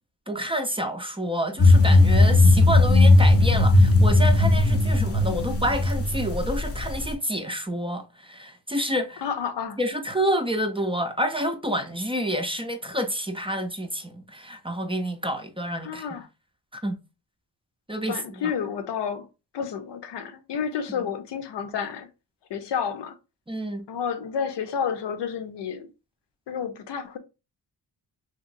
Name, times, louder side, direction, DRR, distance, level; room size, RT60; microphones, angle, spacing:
voice 1, 0.3-9.2 9.8-16.1 16.7-17.0 17.9-18.5 20.9-21.1 23.5-23.8, equal, 15° right, 0.5 m, -28 dB
sound 1, 1.6-7.1, left 2 dB, 35° left, 0.7 m, -17 dB
voice 2, 9.2-9.8 15.8-16.3 18.1-19.3 19.5-22.1 22.5-23.2 23.9-25.9 26.5-27.2, left 7 dB, 80° left, 0.6 m, -30 dB
2.9 x 2.9 x 2.5 m
cardioid pair, 70°, 42 cm